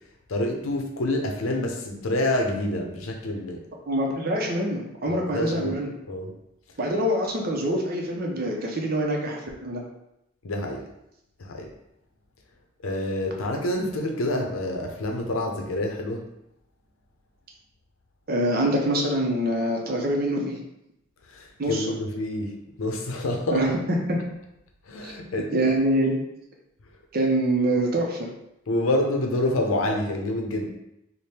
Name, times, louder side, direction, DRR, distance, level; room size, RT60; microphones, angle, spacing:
voice 1, 0.3-3.6 5.1-5.8 6.1-6.3 10.4-10.9 11.4-11.7 12.8-16.3 21.3-23.7 24.9-25.5 28.7-30.7, left 1 dB, 85° left, 2 dB, 0.6 m, -27 dB
voice 2, 3.9-5.9 6.8-9.8 18.3-20.6 21.6-21.9 23.5-23.7 24.1-24.2 25.0-25.1 25.5-26.2 27.1-28.3, right 1 dB, 45° right, 0 dB, 0.6 m, -25 dB
3.4 x 2.1 x 4.2 m, 0.83 s
head